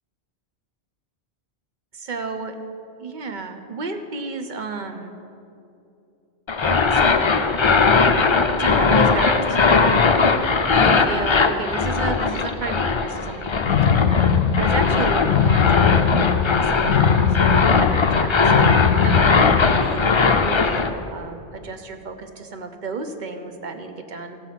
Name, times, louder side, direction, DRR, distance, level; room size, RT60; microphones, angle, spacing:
voice 1, 1.9-2.6 3.0-5.2 6.7-7.3 8.5-10.1 10.7-14.1 14.6-17.4 17.8-18.5 19.0-20.1 20.4-24.4, right 4 dB, 50° right, 7 dB, 1.0 m, -32 dB
sound 1, 6.5-20.9, left 4 dB, 35° left, 0.5 m, -19 dB
sound 2, 13.7-20.0, left 7 dB, 75° left, 0.8 m, -20 dB
15.5 x 6.0 x 7.4 m, 2.7 s
omnidirectional pair, 1.1 m